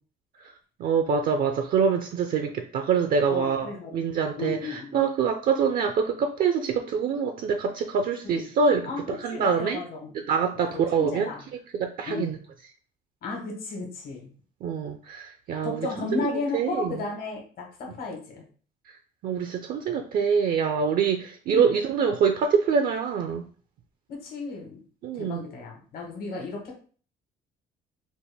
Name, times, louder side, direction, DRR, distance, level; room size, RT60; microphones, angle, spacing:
voice 1, 0.8-9.8 10.1-11.3 11.7-12.4 14.6-15.9 16.1-17.0 18.9-19.0 19.2-23.5 25.0-25.4, right 6 dB, 55° right, 6 dB, 0.4 m, -25 dB
voice 2, 3.3-3.9 4.4-5.0 8.3-8.5 8.9-10.1 10.5-11.4 12.1-12.3 13.2-14.3 15.6-18.4 21.5-21.6 24.1-24.8 25.1-26.8, left 3 dB, 60° left, 0 dB, 1.3 m, -34 dB
4.0 x 2.1 x 3.4 m, 0.42 s
cardioid pair, 110°, 17 cm